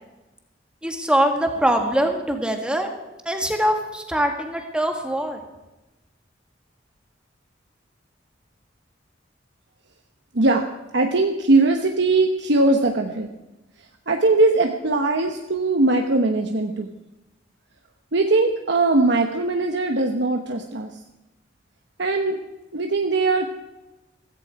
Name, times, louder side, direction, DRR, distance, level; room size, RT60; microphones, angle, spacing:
voice 1, 0.8-2.9 3.3-5.4, right 1 dB, 5° right, 4 dB, 1.7 m, -23 dB
voice 2, 10.3-10.7 10.9-13.3 14.1-16.9 18.1-20.9 22.0-22.4 22.7-23.5, right 2 dB, 70° right, 4 dB, 1.1 m, -20 dB
16.0 x 15.0 x 4.8 m, 1.0 s
head